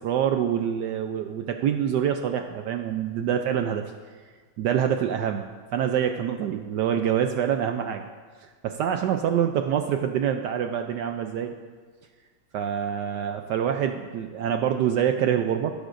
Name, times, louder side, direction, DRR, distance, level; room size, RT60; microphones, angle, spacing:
voice 1, 0.0-3.8 4.6-8.0 8.4-11.5 12.5-15.7, right 9 dB, 75° right, 6 dB, 1.0 m, -26 dB
18.0 x 10.0 x 2.5 m, 1.5 s
omnidirectional pair, 2.2 m